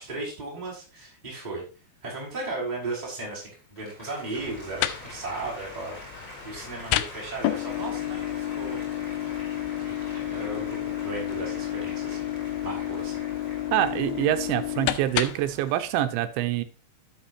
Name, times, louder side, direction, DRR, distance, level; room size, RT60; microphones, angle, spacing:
voice 1, 0.0-1.6 2.0-8.8 9.8-12.3 12.6-13.2, right 2 dB, 10° right, -3 dB, 5.4 m, -36 dB
Applause, 3.4-14.9, left 1 dB, 15° left, 5.7 m, -45 dB
sound 1, 4.4-15.6, left 13 dB, 85° left, 2.2 m, -31 dB
sound 2, 4.4-15.9, left 6 dB, 70° left, 4.1 m, -51 dB
voice 2, 13.7-16.6, right 13 dB, 80° right, 10 dB, 3.3 m, -25 dB
13.0 x 8.7 x 2.7 m, 0.34 s
omnidirectional pair, 5.3 m